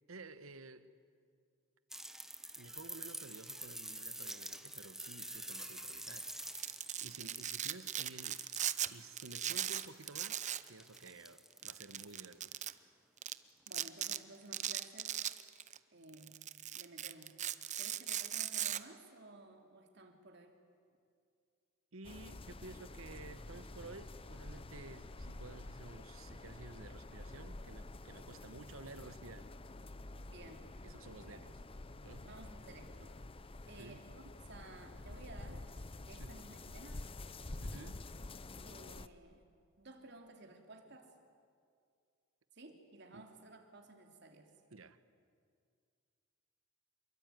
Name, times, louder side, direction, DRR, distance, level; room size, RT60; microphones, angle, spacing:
voice 1, 0.1-0.9 2.6-8.5 8.9-12.6 21.9-29.5 30.8-31.6 32.0-32.3 33.6-34.1 36.2-36.4 37.6-38.0 43.1-43.3 44.7-45.0, right 3 dB, 85° right, 1.2 m, -53 dB
sound 1, 1.9-12.3 13.7-13.8, right 1 dB, ahead, 0.8 m, -48 dB
Domestic sounds home sounds, 6.4-8.9 9.2-10.7 11.0-11.1 11.6-12.7 13.2-13.3 13.7-14.2 14.5-15.8 16.1-18.8, right 11 dB, 35° right, 0.7 m, -38 dB
voice 2, 13.7-15.2 15.9-16.4 16.7-17.4 17.8-20.6 30.2-30.7 31.2-31.4 32.2-33.2 33.7-35.7 36.0-37.1 38.6-39.5 39.8-41.1 42.5-44.5, right 2 dB, 55° right, 3.2 m, -55 dB
sound 2, 22.0-39.1, left 2 dB, 25° left, 0.7 m, -49 dB
27.0 x 22.5 x 9.4 m
head